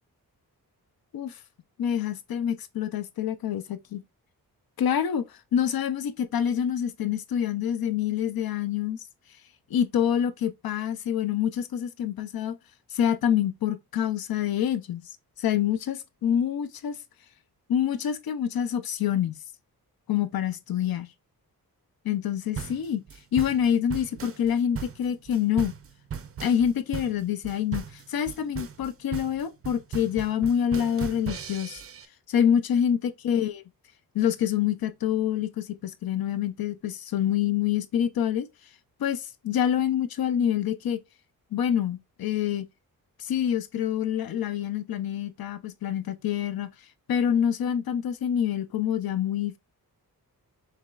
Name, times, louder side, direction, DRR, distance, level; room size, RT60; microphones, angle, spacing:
voice 1, 1.8-4.0 4.8-5.2 5.5-9.0 9.7-12.6 12.9-15.1 15.4-17.0 17.7-19.4 20.1-21.1 22.0-23.0 23.3-25.7 26.4-31.8 32.3-33.0 33.2-33.6 34.1-38.5 39.0-41.0 41.5-42.7 43.2-46.7 47.1-49.6, left 9 dB, 70° left, 0.6 m, -26 dB
sound 1, 22.5-32.1, right 7 dB, 40° right, 0.5 m, -37 dB
5.7 x 3.2 x 2.4 m
wide cardioid pair, 165°, 37 cm